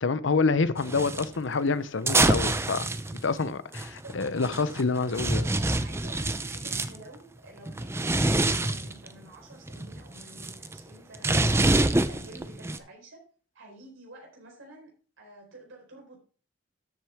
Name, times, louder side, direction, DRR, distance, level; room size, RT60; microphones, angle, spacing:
voice 1, 0.0-2.8 3.2-5.4, left 4 dB, 70° left, 0.7 m, -27 dB
sound 1, 0.8-1.3 2.1-7.0 7.7-9.1 9.5-12.8, right 2 dB, 15° right, 0.5 m, -26 dB
voice 2, 3.8-4.1 4.6-4.7 5.3-11.3 11.7-13.2 13.5-14.9 15.2-16.2, right 2 dB, 90° right, 4.3 m, -49 dB
13.0 x 7.6 x 3.5 m
head